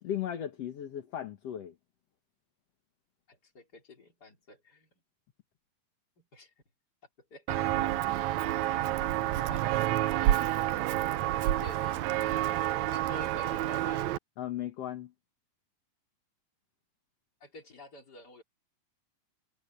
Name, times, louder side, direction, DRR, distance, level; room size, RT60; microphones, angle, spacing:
voice 1, 0.0-1.7 14.4-15.1, left 10 dB, 55° left, 2.2 m, -36 dB
voice 2, 3.3-4.9 6.2-6.5 7.3-7.9 9.5-10.0 11.4-12.1 12.9-14.1 17.4-18.4, left 1 dB, 25° left, 4.1 m, -49 dB
Walk footsteps, 7.5-14.2, right 13 dB, 85° right, 1.5 m, -29 dB
omnidirectional pair, 4.2 m